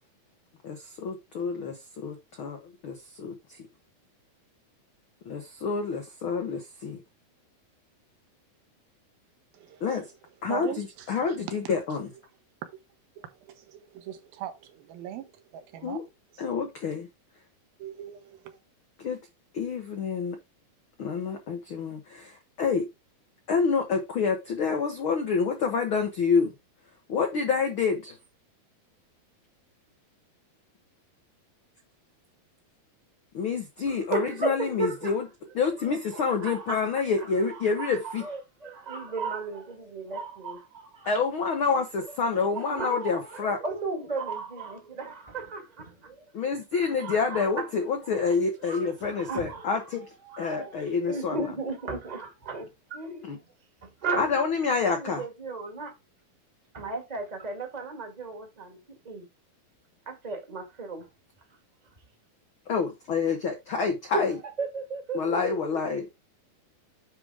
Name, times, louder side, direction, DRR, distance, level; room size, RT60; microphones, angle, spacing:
voice 1, 0.6-3.7 5.2-7.0 9.8-10.1 10.4-12.1 15.8-16.0 16.4-17.1 19.0-19.2 19.5-20.4 21.0-22.9 23.5-26.5 27.1-28.2 33.3-35.3 35.5-38.2 41.0-43.6 46.3-51.4 53.2-53.4 54.2-55.2 62.7-64.4 65.1-66.1, left 5 dB, 85° left, 1.1 m, -28 dB
voice 2, 9.5-9.9 10.5-11.7 13.2-16.0 16.3-16.5 17.8-18.6, right 9 dB, 80° right, 2.9 m, -40 dB
voice 3, 33.9-35.2 35.8-41.2 42.0-42.1 42.3-46.2 46.7-47.7 48.7-49.9 50.2-53.4 53.8-54.3 54.9-55.9 56.7-59.3 60.0-61.1 64.1-64.2 64.6-65.8, right 3 dB, 20° right, 1.1 m, -35 dB
9.8 x 3.6 x 4.8 m
omnidirectional pair, 4.2 m